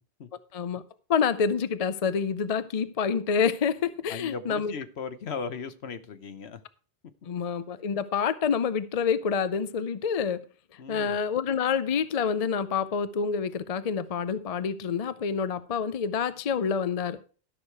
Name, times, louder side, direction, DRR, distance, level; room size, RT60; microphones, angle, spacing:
voice 1, 0.5-0.8 1.1-4.7 7.2-10.4 10.9-17.2, left 6 dB, 45° left, 0.5 m, -27 dB
voice 2, 4.1-6.6 10.8-11.2, left 5 dB, 70° left, 1.1 m, -37 dB
13.0 x 6.5 x 4.6 m
omnidirectional pair, 1.1 m